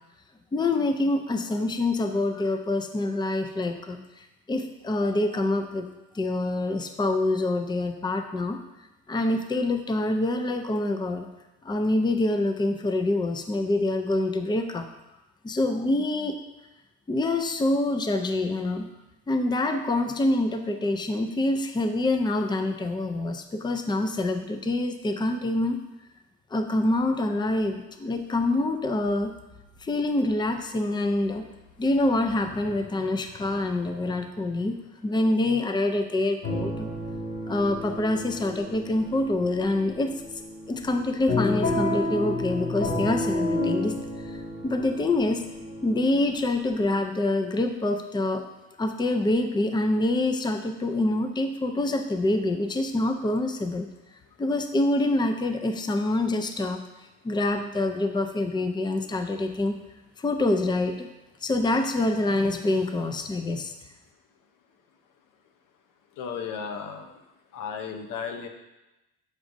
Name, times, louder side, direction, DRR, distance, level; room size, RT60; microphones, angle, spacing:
voice 1, 0.5-5.9 6.1-8.6 9.1-11.3 11.6-14.9 15.4-16.4 17.1-18.9 19.3-25.8 26.5-29.3 29.8-31.5 31.8-34.8 35.0-36.9 37.5-40.1 40.7-44.0 44.3-44.4 44.6-45.4 45.8-48.4 48.8-53.9 54.4-56.8 57.2-59.8 60.2-61.1 61.4-63.7, left 2 dB, 15° left, 7 dB, 0.5 m, -26 dB
sound 1, 36.4-47.0, left 2 dB, 45° left, 2.0 m, -31 dB
voice 2, 66.2-67.0 67.5-68.5, left 6 dB, 80° left, 5 dB, 0.8 m, -34 dB
7.3 x 4.9 x 2.6 m, 0.99 s
cardioid pair, 80°, 32 cm